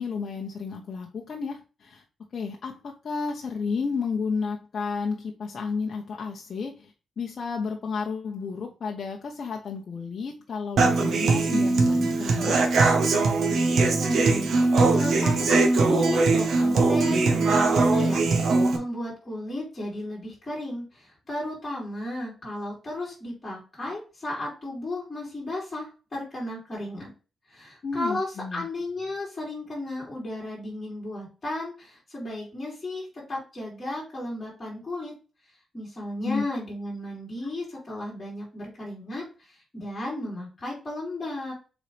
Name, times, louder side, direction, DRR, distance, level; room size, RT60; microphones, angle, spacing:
voice 1, 0.0-2.0 2.3-12.6 27.8-28.6 36.2-36.4 37.7-37.8, left 5 dB, 45° left, 0 dB, 0.9 m, -32 dB
Human voice / Acoustic guitar, 10.8-18.8, right 3 dB, 70° right, 1.3 m, -21 dB
voice 2, 13.9-14.5 14.9-27.1 27.5-35.1 35.7-41.5, left 1 dB, 20° left, -5 dB, 3.9 m, -34 dB
7.1 x 4.1 x 3.4 m, 0.33 s
wide cardioid pair, 145°, 0 cm